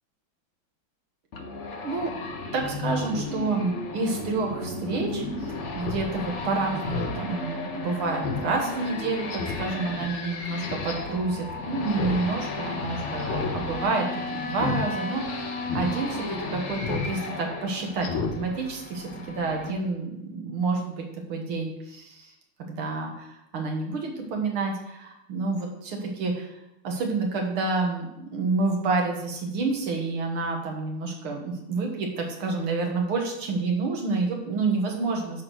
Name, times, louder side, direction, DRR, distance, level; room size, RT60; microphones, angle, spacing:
sound 1, 1.3-19.7, left 3 dB, 50° left, 0.9 m, -34 dB
voice 1, 1.8-2.1 2.5-22.3 22.6-26.5 26.8-28.1 28.3-35.4, right 3 dB, 75° right, 1 dB, 2.4 m, -29 dB
Speech synthesizer, 5.8-6.0 6.4-6.5 6.8-7.2 7.6-7.7 8.2-8.4 8.8-8.9 9.3-9.6 10.6-10.9 11.9-12.2 12.5-12.6 13.2-13.5 13.8-14.1 14.5-14.8 15.2-15.3 15.7-15.9 16.8-17.1 17.4-17.6 18.0-18.3 18.7-18.8, left 5 dB, 80° left, 2.0 m, -31 dB
10.5 x 3.7 x 6.3 m, 0.87 s
omnidirectional pair, 2.3 m